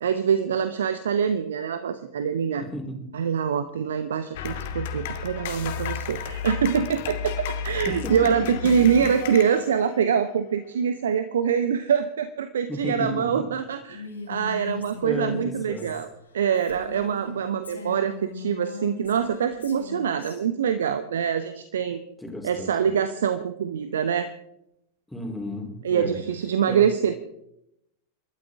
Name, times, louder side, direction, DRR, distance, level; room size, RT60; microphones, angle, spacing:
voice 1, 0.0-2.6 3.1-16.1 16.3-22.0 22.4-24.3 25.8-27.1, right 7 dB, 65° right, 10 dB, 1.0 m, -24 dB
voice 2, 2.6-3.0 7.9-8.9 12.7-13.4 15.0-15.9 22.2-22.7 25.1-26.2 26.7-26.9, left 1 dB, 5° left, 2 dB, 3.6 m, -33 dB
sound 1, 4.3-10.3, left 7 dB, 55° left, 1.9 m, -33 dB
Female speech woman speaking, 13.9-17.3 17.6-20.4, left 5 dB, 80° left, 4.2 m, -40 dB
29.0 x 13.0 x 3.7 m, 0.80 s
figure-of-eight pair, 90°, 0 cm